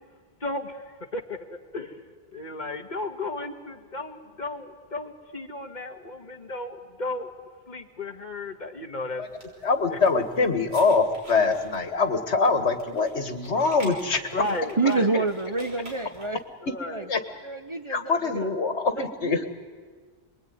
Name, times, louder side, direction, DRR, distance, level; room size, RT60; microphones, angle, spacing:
voice 1, 0.4-7.3 7.7-9.2 9.6-10.0 14.3-15.2 16.6-17.1, left 2 dB, 40° left, 6 dB, 1.9 m, -34 dB
sound 1, 9.2-16.4, equal, 65° right, 6.1 m, -48 dB
voice 2, 9.6-14.3 17.1-17.2 17.9-19.4, left 4 dB, 85° left, 8 dB, 2.1 m, -24 dB
voice 3, 14.8-16.4 16.9-17.0 17.4-18.5 19.0-19.4, right 3 dB, 30° right, 9 dB, 0.9 m, -28 dB
27.0 x 21.5 x 9.5 m, 1.6 s
omnidirectional pair, 1.1 m